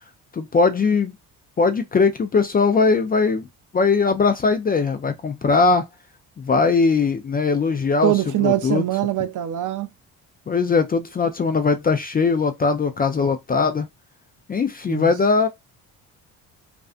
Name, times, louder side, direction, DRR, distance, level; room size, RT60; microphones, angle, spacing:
voice 1, 0.3-1.1 1.6-3.5 3.7-5.9 6.4-8.1 8.4-8.8 10.5-13.9 14.5-15.5, left 4 dB, 25° left, 0.3 m, -20 dB
voice 2, 8.0-9.9 14.9-15.1, right 14 dB, 55° right, 0.5 m, -23 dB
2.4 x 2.2 x 2.4 m
supercardioid pair, 70°, 39 cm